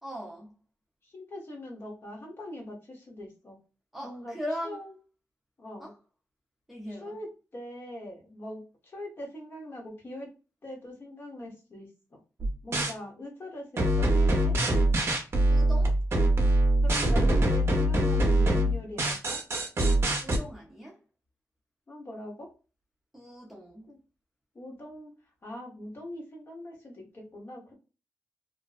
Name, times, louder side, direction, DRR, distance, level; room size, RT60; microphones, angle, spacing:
voice 1, 0.0-0.5 3.9-4.8 5.8-5.9 6.7-7.2 15.5-16.0 20.2-21.0 23.1-23.9, equal, ahead, 0.5 m, -39 dB
voice 2, 1.0-3.6 4.0-4.3 4.6-4.9 5.6-5.9 6.9-7.3 7.5-10.3 10.6-12.2 12.6-14.5 16.8-19.4 21.9-22.5 23.9-24.0 24.5-25.1 25.4-27.7, left 1 dB, 40° left, 0.9 m, -42 dB
sound 1, 12.4-12.9 13.8-20.4, right 1 dB, 45° right, 0.6 m, -23 dB
2.5 x 2.1 x 2.3 m
wide cardioid pair, 150°, 6 cm